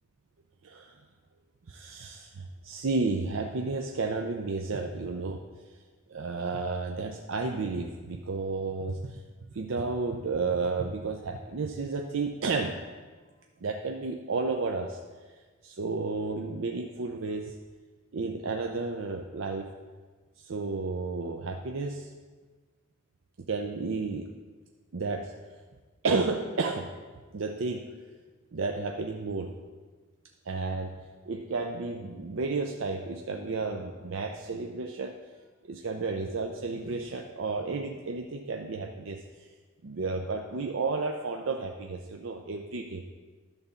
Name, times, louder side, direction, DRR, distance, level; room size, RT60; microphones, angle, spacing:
voice 1, 1.7-5.4 6.1-9.2 9.5-12.8 13.6-15.0 15.6-17.5 18.1-19.7 20.4-22.1 23.4-24.3 24.9-25.3 26.0-26.9 27.3-27.9 28.5-29.5 30.5-31.0 31.3-35.2 35.6-39.2 39.8-43.0, right 3 dB, 65° right, 3 dB, 0.5 m, -32 dB
11.0 x 4.1 x 6.8 m, 1.4 s
head